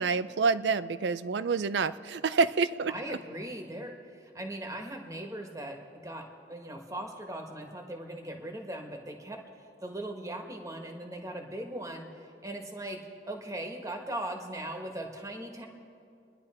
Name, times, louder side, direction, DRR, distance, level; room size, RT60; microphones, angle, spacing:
voice 1, 0.0-3.2, right 4 dB, 80° right, 14 dB, 0.5 m, -28 dB
voice 2, 2.9-3.9 4.3-5.8 6.0-9.4 9.8-12.1 12.4-13.0 13.3-15.7, right 1 dB, 20° right, 3 dB, 1.4 m, -39 dB
26.5 x 10.5 x 4.3 m, 2.5 s
head